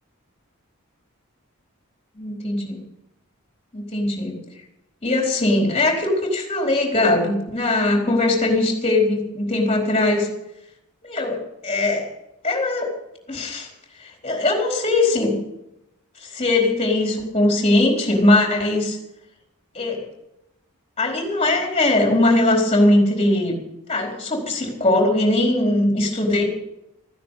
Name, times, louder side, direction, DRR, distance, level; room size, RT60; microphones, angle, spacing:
voice 1, 2.2-2.8 3.7-4.3 5.0-10.3 11.0-12.1 12.4-12.9 13.3-13.7 14.0-15.4 16.2-19.0 19.7-20.1 21.0-23.6 23.9-26.5, left 2 dB, 25° left, 0 dB, 4.4 m, -20 dB
15.5 x 10.5 x 8.5 m, 0.87 s
head